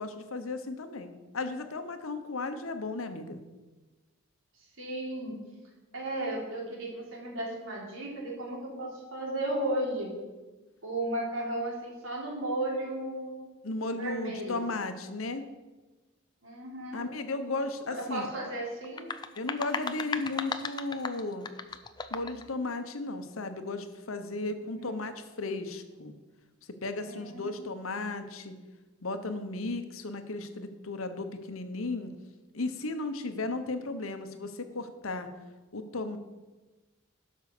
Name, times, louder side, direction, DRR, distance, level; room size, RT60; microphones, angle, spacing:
voice 1, 0.0-3.4 13.6-15.4 16.9-18.3 19.4-21.5 22.1-26.1 26.8-28.5 29.0-32.1 32.5-35.3 35.7-36.2, left 2 dB, 85° left, 9 dB, 1.0 m, -35 dB
voice 2, 4.8-5.3 5.9-10.1 10.8-13.4 13.9-14.5 16.4-17.0 17.9-19.1 24.6-25.0 27.0-27.7, right 1 dB, 80° right, -2 dB, 3.5 m, -35 dB
sound 1, 18.8-22.5, left 4 dB, 20° left, 0.4 m, -36 dB
12.5 x 5.6 x 6.7 m, 1.2 s
head